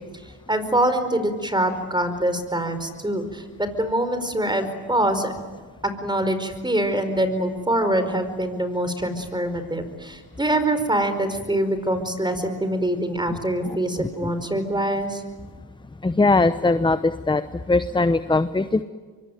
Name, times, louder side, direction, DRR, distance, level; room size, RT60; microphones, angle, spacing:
voice 1, 0.5-5.3 5.8-15.2, right 1 dB, 10° right, 10 dB, 4.7 m, -24 dB
voice 2, 16.0-17.4 17.7-18.8, left 3 dB, 10° left, 12 dB, 0.9 m, -20 dB
25.0 x 24.0 x 9.2 m, 1.5 s
supercardioid pair, 70°, 45 cm